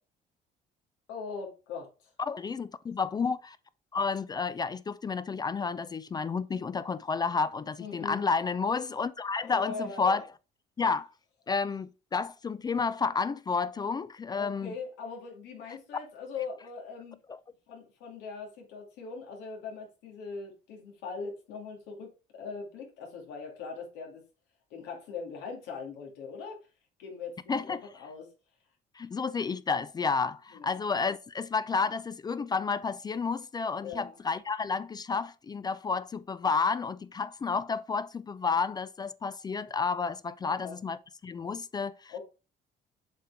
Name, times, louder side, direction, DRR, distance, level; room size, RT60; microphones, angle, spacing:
voice 1, 1.1-1.9 7.8-8.2 9.4-10.2 14.3-17.2 17.7-24.2 24.7-26.6 27.0-28.3 30.5-30.8 33.8-34.2 40.4-40.8 42.1-42.2, left 5 dB, 85° left, 2.4 m, -41 dB
voice 2, 2.2-3.6 3.9-10.2 10.8-11.1 11.5-14.7 17.3-17.4 27.5-27.9 29.0-42.1, left 5 dB, 25° left, 0.4 m, -31 dB
7.4 x 4.4 x 3.5 m
cardioid pair, 110°, 17 cm